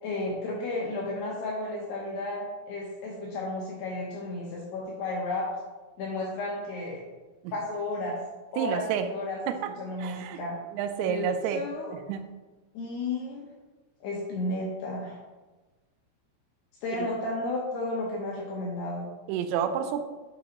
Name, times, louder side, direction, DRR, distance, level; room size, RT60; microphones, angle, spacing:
voice 1, 0.0-5.5 6.0-7.0 7.5-8.2 8.5-9.4 9.8-10.6 11.1-12.0 12.7-13.5 14.0-15.2 16.8-19.1, left 2 dB, 75° left, -3 dB, 2.6 m, -33 dB
voice 2, 8.6-9.1 9.5-9.7 10.0-10.4 10.7-11.6 11.9-12.2 17.0-17.1 19.3-20.0, right 9 dB, 85° right, 7 dB, 3.3 m, -29 dB
10.5 x 6.2 x 2.9 m, 1.2 s
omnidirectional pair, 5.9 m